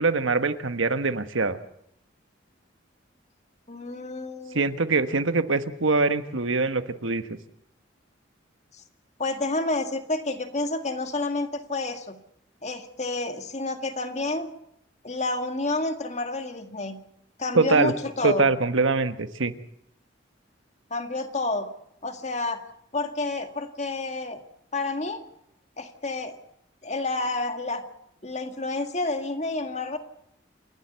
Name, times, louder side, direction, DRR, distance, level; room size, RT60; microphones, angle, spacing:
voice 1, 0.0-1.6 4.5-7.2 17.5-17.9 18.2-19.5, right 3 dB, 85° right, 11 dB, 1.3 m, -23 dB
voice 2, 3.7-4.6 9.2-12.2 12.6-14.5 15.0-17.0 17.4-18.5 20.9-21.7 22.0-22.6 22.9-24.4 24.7-25.2 25.8-26.4 26.8-27.8 28.2-30.0, left 2 dB, 35° left, 7 dB, 2.0 m, -29 dB
29.0 x 12.0 x 8.1 m, 0.75 s
head